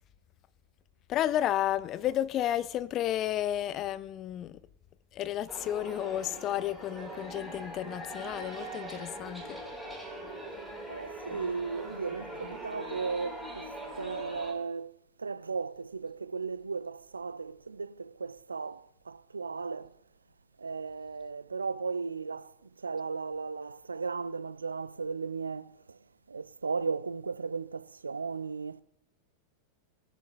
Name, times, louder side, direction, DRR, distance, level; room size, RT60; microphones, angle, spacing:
voice 1, 1.1-4.6 5.1-9.6, left 12 dB, 35° left, 0.5 m, -32 dB
sound 1, 5.5-14.5, right 1 dB, ahead, 4.7 m, -42 dB
voice 2, 10.9-14.9 15.2-19.9 20.6-26.0 26.3-28.8, right 4 dB, 75° right, 0.4 m, -36 dB
20.5 x 10.5 x 2.4 m
figure-of-eight pair, 90°, 0 cm